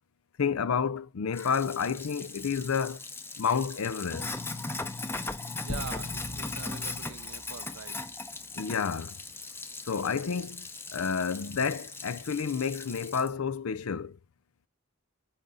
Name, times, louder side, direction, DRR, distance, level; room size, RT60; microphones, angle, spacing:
voice 1, 0.4-3.0 3.4-4.3 8.5-9.2 9.9-14.2, left 6 dB, 90° left, 0.5 m, -30 dB
Sink (filling or washing), 1.3-13.3, left 3 dB, 10° left, 0.6 m, -39 dB
voice 2, 5.3-8.1, right 6 dB, 80° right, 0.6 m, -44 dB
sound 1, 5.7-8.5, left 1 dB, 35° left, 0.9 m, -43 dB
8.9 x 4.0 x 3.7 m
head